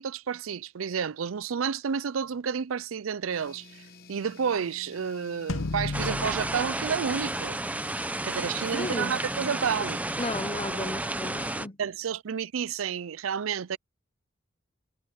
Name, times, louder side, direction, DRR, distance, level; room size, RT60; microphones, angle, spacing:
voice 1, 0.0-7.6 8.2-10.0 11.8-13.8, right 7 dB, 85° right, 0.5 m, -30 dB
sound 1, 3.3-10.5, left 3 dB, 50° left, 1.4 m, -51 dB
sound 2, 5.5-8.0, left 3 dB, 75° left, 0.8 m, -35 dB
sound 3, 5.9-11.7, right 2 dB, 5° right, 0.6 m, -32 dB
voice 2, 8.7-9.1 10.2-11.8, left 2 dB, 25° left, 0.8 m, -34 dB
head